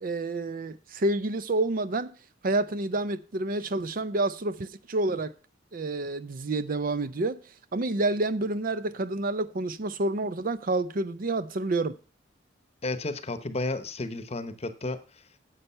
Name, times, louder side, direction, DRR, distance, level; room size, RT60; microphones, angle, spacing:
voice 1, 0.0-2.1 2.4-5.3 5.7-7.4 7.7-11.9, right 2 dB, 45° right, 0.5 m, -28 dB
voice 2, 12.8-15.0, left 2 dB, 35° left, 0.9 m, -32 dB
9.9 x 7.9 x 5.5 m
head